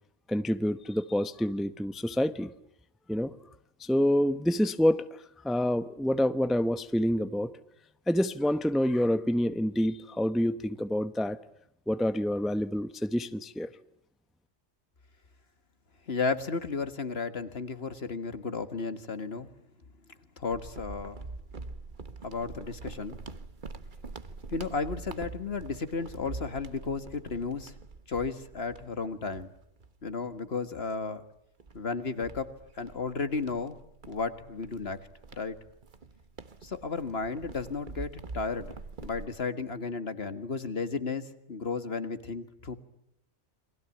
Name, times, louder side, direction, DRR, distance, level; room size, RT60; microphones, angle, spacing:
voice 1, 0.3-2.5 3.1-3.3 3.8-5.1 5.4-7.5 8.1-11.4 11.9-13.7, equal, ahead, 12 dB, 0.8 m, -27 dB
voice 2, 16.1-19.5 20.4-21.3 22.2-23.2 24.5-27.7 28.1-29.5 30.0-31.2 31.7-33.8 34.1-35.1 35.3-35.6 36.6-38.8 39.0-42.8, left 4 dB, 50° left, 11 dB, 1.9 m, -33 dB
sound 1, 20.5-30.4 30.8-31.0 31.6-39.3, right 3 dB, 40° right, 1.4 m, -45 dB
29.5 x 23.5 x 8.5 m, 0.77 s
omnidirectional pair, 1.3 m